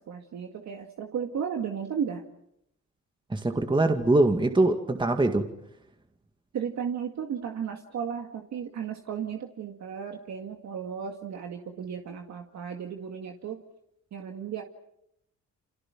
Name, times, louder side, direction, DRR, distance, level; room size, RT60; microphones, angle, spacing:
voice 1, 0.1-2.2 6.5-13.6 14.1-14.6, right 7 dB, 65° right, 2.1 m, -34 dB
voice 2, 3.3-5.5, right 2 dB, 15° right, 2.0 m, -23 dB
30.0 x 26.5 x 6.1 m
cardioid pair, 90°, 30 cm